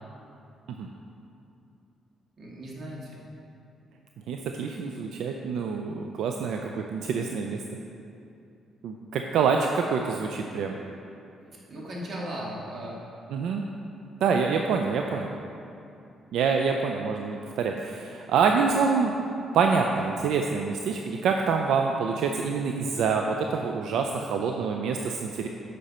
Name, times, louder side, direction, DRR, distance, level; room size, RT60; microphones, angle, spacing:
voice 1, 2.4-3.2 11.7-13.0, equal, 50° right, -4 dB, 2.4 m, -37 dB
voice 2, 4.3-7.6 8.8-10.8 13.3-13.6 14.2-15.3 16.3-19.2 19.5-25.5, right 5 dB, 80° right, 3 dB, 0.5 m, -26 dB
10.5 x 6.5 x 4.3 m, 2.6 s
cardioid pair, 90°, 0 cm